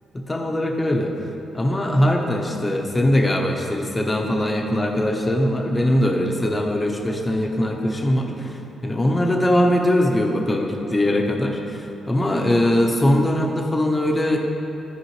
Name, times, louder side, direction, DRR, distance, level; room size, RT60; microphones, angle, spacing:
voice 1, 0.1-1.1 1.5-14.4, left 1 dB, 25° left, 1 dB, 1.1 m, -21 dB
13.0 x 4.8 x 3.3 m, 2.9 s
supercardioid pair, 55°, 0 cm